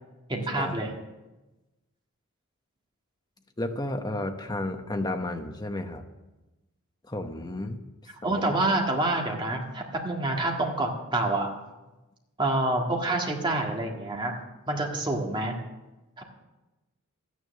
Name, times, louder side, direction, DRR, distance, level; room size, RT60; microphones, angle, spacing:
voice 1, 0.3-0.9 8.2-11.5 12.4-14.3 14.7-15.6 16.2-16.3, right 2 dB, 20° right, 1 dB, 1.7 m, -27 dB
voice 2, 3.6-6.0 7.1-7.8 8.2-8.4, left 1 dB, 20° left, 6 dB, 0.9 m, -32 dB
12.5 x 9.6 x 6.5 m, 1.1 s
head